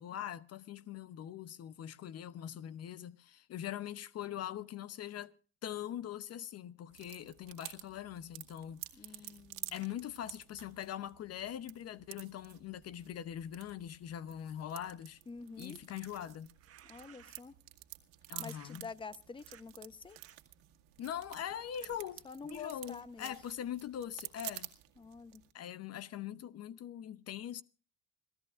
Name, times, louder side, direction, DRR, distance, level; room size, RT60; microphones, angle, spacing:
voice 1, 0.0-5.3 5.6-9.3 9.7-15.2 15.6-16.5 18.3-18.9 21.0-24.7 25.5-27.6, left 10 dB, 50° left, 0.8 m, -42 dB
sound 1, 6.9-25.5, right 18 dB, 85° right, 2.1 m, -51 dB
voice 2, 8.9-9.7 15.3-15.8 16.8-17.6 18.4-20.2 22.2-23.4 25.0-25.4, left 5 dB, 15° left, 0.9 m, -48 dB
sound 2, 16.4-17.7 18.4-18.8 19.3-19.6 20.1-20.4 21.0-23.6, right 10 dB, 45° right, 1.4 m, -62 dB
26.5 x 16.0 x 2.5 m
supercardioid pair, 95°, 32 cm